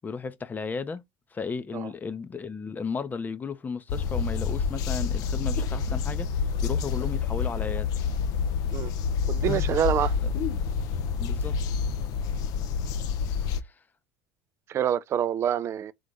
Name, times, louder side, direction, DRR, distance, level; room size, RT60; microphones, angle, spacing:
voice 1, 0.0-1.0 1.3-7.9 10.2-10.3 11.2-11.6 13.6-13.7, left 5 dB, 25° left, 0.7 m, -34 dB
sound 1, 3.9-13.6, left 6 dB, 55° left, 0.6 m, -28 dB
voice 2, 9.3-10.2 14.7-15.9, right 9 dB, 40° right, 0.4 m, -26 dB
3.9 x 3.3 x 3.1 m
hypercardioid pair, 85°, 7 cm